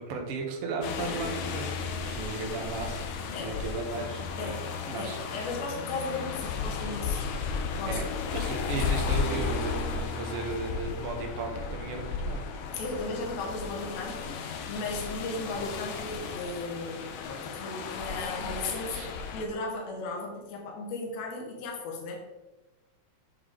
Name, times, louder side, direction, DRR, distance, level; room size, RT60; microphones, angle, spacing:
voice 1, 0.0-1.7 1.9-3.0 3.4-4.5 4.9-5.4 7.5-12.4 18.9-19.1, right 3 dB, 75° right, 2 dB, 1.4 m, -36 dB
sound 1, 0.8-19.5, left 5 dB, 85° left, 1.6 m, -34 dB
voice 2, 5.0-7.2 7.8-8.0 12.7-22.2, left 2 dB, 60° left, 0 dB, 2.2 m, -36 dB
7.1 x 6.5 x 3.7 m, 1.1 s
omnidirectional pair, 4.2 m